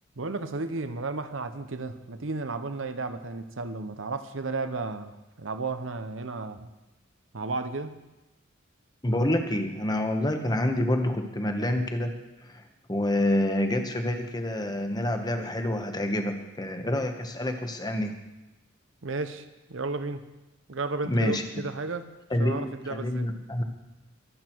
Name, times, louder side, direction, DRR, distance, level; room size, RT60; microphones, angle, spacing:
voice 1, 0.2-5.1 5.4-6.7 7.3-7.9 19.0-20.2 20.7-22.0 22.4-23.3, right 3 dB, 70° right, 10 dB, 0.9 m, -33 dB
voice 2, 9.0-12.1 12.5-12.6 12.9-18.1 21.0-21.4 22.3-23.6, left 1 dB, 20° left, 5 dB, 1.2 m, -27 dB
22.5 x 8.3 x 4.6 m, 1.1 s
head